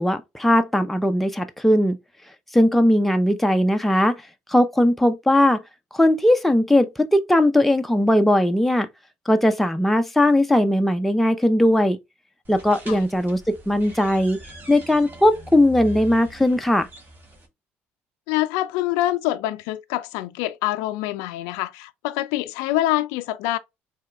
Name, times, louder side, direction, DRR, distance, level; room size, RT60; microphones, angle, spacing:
voice 1, 0.0-2.0 2.5-4.2 4.5-5.6 5.9-8.9 9.3-12.0 12.5-14.4 14.7-16.9, left 1 dB, 5° left, 0.6 m, -19 dB
sound 1, 12.4-17.5, right 1 dB, 35° right, 1.8 m, -42 dB
voice 2, 18.3-23.6, left 15 dB, 80° left, 0.4 m, -25 dB
4.6 x 3.4 x 2.3 m
hypercardioid pair, 70°, 6 cm